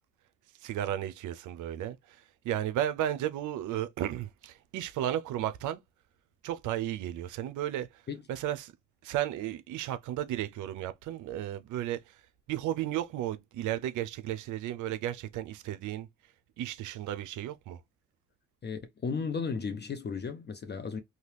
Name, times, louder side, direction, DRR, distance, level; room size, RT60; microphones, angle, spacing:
voice 1, 0.6-2.2 2.4-5.8 6.4-7.9 8.3-8.7 9.0-12.0 12.5-16.1 16.6-17.8, right 12 dB, 80° right, 0.5 m, -34 dB
voice 2, 18.6-21.0, left 5 dB, 35° left, 0.6 m, -35 dB
2.8 x 2.2 x 3.2 m
cardioid pair, 90°, 30 cm